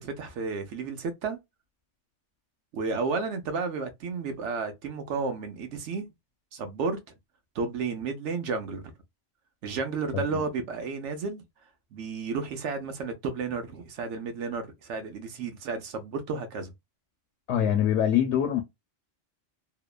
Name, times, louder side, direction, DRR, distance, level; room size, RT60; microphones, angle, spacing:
voice 1, 0.0-1.4 2.7-6.1 6.5-7.0 7.5-8.8 9.6-11.4 11.9-16.7, right 4 dB, 75° right, 1.0 m, -32 dB
voice 2, 17.5-18.6, left 9 dB, 70° left, 0.9 m, -24 dB
2.8 x 2.1 x 2.2 m
omnidirectional pair, 1.3 m